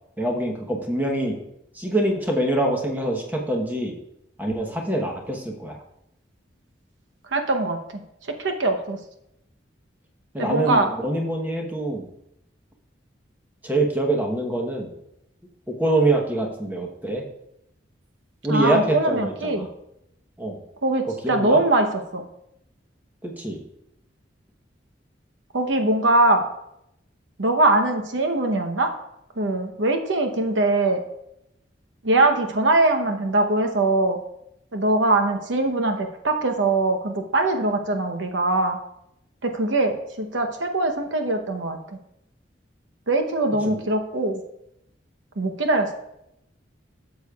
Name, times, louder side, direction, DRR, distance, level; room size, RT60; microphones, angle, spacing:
voice 1, 0.2-1.4 1.7-3.9 4.4-5.8 10.3-12.1 13.6-14.9 15.7-17.2 18.4-19.7 20.4-20.6 21.2-21.6 23.2-23.6 43.6-43.8, right 1 dB, 10° right, 1 dB, 1.0 m, -24 dB
voice 2, 7.3-9.0 10.4-10.9 18.5-19.7 20.8-22.2 25.5-26.4 27.4-28.9 29.4-31.0 32.0-34.2 34.7-38.8 39.4-41.8 43.1-44.4 45.4-45.9, right 2 dB, 85° right, 4 dB, 0.9 m, -22 dB
12.5 x 6.7 x 2.4 m, 0.82 s
head